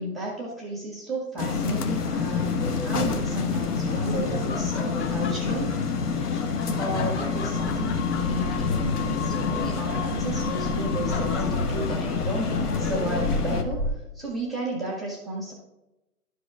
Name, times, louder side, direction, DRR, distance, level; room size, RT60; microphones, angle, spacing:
voice 1, 0.0-5.8 6.8-13.9 14.1-15.5, right 1 dB, ahead, -7 dB, 0.4 m, -33 dB
sound 1, 1.4-13.6, left 5 dB, 75° left, 1.2 m, -27 dB
sound 2, 1.4-13.9, equal, 20° left, 0.8 m, -37 dB
Laughter, 3.3-13.3, left 4 dB, 50° left, 1.3 m, -40 dB
11.5 x 4.8 x 3.6 m, 0.94 s
hypercardioid pair, 145°, 46 cm